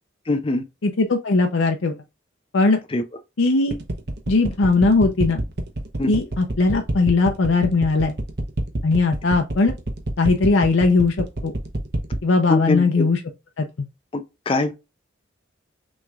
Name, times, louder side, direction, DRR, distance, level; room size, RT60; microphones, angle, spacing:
voice 1, 0.3-0.6 2.9-3.0 6.0-6.1 12.5-13.0 14.1-14.7, left 2 dB, 25° left, 0.4 m, -22 dB
voice 2, 0.8-2.0 2.5-2.8 3.4-3.8 4.3-5.4 6.1-8.1 8.8-9.8 10.2-11.5 12.2-13.2 13.6-13.7, left 3 dB, 75° left, 0.6 m, -19 dB
sound 1, 3.7-12.2, right 1 dB, 55° right, 0.9 m, -26 dB
6.1 x 3.1 x 2.4 m
head